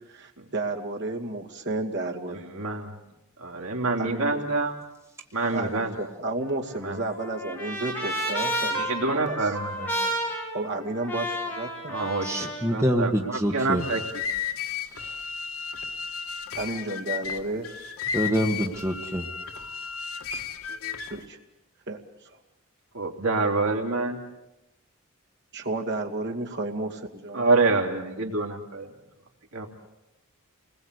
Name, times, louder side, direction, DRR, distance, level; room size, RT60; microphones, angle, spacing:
voice 1, 0.1-2.5 4.0-4.4 5.5-8.7 9.1-9.6 10.5-12.0 16.6-17.7 21.1-21.4 21.9-22.3 25.5-27.5, right 2 dB, 55° right, 2.4 m, -32 dB
voice 2, 2.6-2.9 3.4-4.7 5.3-5.9 6.8-7.0 9.4-9.9 11.9-14.0 22.9-24.2 27.3-28.9 29.5-29.7, right 3 dB, 75° right, 3.4 m, -26 dB
Trumpet, 6.4-12.7, equal, 5° left, 5.7 m, -31 dB
voice 3, 12.2-13.8 18.1-19.3, equal, 15° right, 1.7 m, -25 dB
sound 1, 13.6-21.3, left 7 dB, 75° left, 1.8 m, -34 dB
29.0 x 21.0 x 8.3 m
head